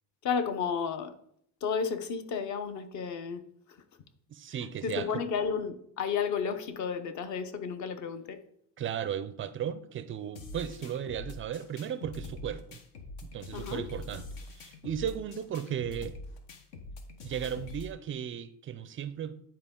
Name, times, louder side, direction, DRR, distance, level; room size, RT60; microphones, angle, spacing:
voice 1, 0.2-1.1 1.6-3.4 4.8-8.4 13.5-13.9, left 6 dB, 45° left, 0.8 m, -32 dB
voice 2, 4.3-5.1 8.8-12.8 13.2-14.3 14.5-16.2 17.2-19.4, right 9 dB, 30° right, 0.4 m, -35 dB
sound 1, 10.4-17.9, left 2 dB, 70° left, 1.4 m, -44 dB
10.0 x 4.6 x 3.7 m
cardioid pair, 140°, 43 cm